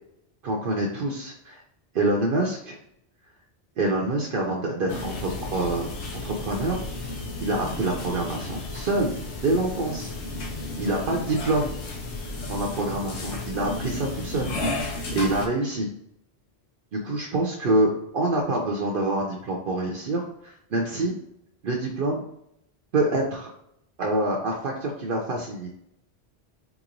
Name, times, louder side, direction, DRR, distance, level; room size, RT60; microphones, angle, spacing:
voice 1, 0.4-1.6 1.9-2.8 3.8-5.9 6.2-7.1 7.4-10.1 10.8-11.8 12.5-14.5 15.1-15.9 16.9-21.2 21.6-22.2 22.9-23.5 24.0-25.7, right 2 dB, 60° right, -1 dB, 0.8 m, -26 dB
sound 1, 4.9-15.5, left 2 dB, 85° left, 1.0 m, -33 dB
3.9 x 2.9 x 2.5 m, 0.75 s
omnidirectional pair, 1.1 m